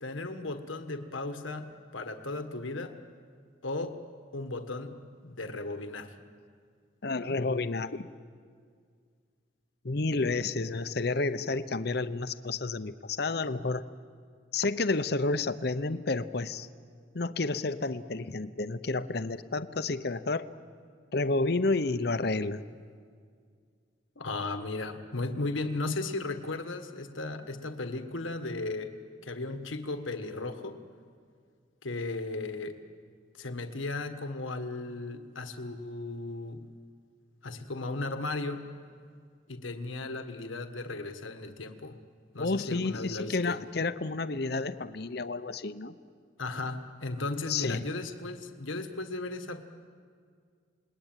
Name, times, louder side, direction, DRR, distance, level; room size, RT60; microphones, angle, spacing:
voice 1, 0.0-3.0 3.6-4.0 4.3-6.1 24.2-28.9 29.2-30.8 31.8-32.8 33.3-36.7 37.4-38.7 39.5-42.0 42.3-43.6 46.4-49.6, left 2 dB, 85° left, 7 dB, 1.5 m, -36 dB
voice 2, 7.0-8.1 9.8-13.9 14.5-16.7 17.1-20.5 21.1-22.6 42.4-45.9 47.5-47.9, left 3 dB, 55° left, 12 dB, 0.7 m, -30 dB
28.5 x 20.5 x 9.0 m, 2.1 s
head